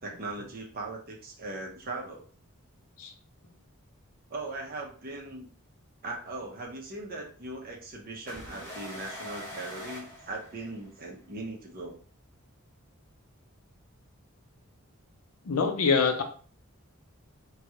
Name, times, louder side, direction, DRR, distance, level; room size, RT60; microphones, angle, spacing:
voice 1, 0.0-2.3 4.3-5.5 6.0-12.0, right 2 dB, 45° right, 0 dB, 0.7 m, -39 dB
sound 1, 8.3-11.1, equal, 10° left, 1.1 m, -43 dB
voice 2, 15.5-16.2, left 5 dB, 80° left, 6 dB, 0.6 m, -24 dB
3.0 x 2.3 x 2.8 m, 0.42 s
head